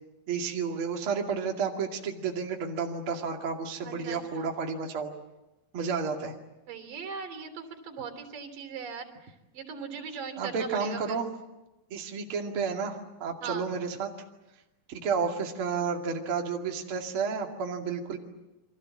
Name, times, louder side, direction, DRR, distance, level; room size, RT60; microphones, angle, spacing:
voice 1, 0.3-5.1 5.7-6.3 10.4-11.3 11.9-14.1 14.9-18.2, right 5 dB, 40° right, 2 dB, 2.9 m, -31 dB
voice 2, 3.8-4.5 6.7-11.2 13.4-13.7, right 6 dB, 80° right, 7 dB, 5.0 m, -39 dB
29.5 x 24.5 x 7.5 m, 1.0 s
omnidirectional pair, 3.9 m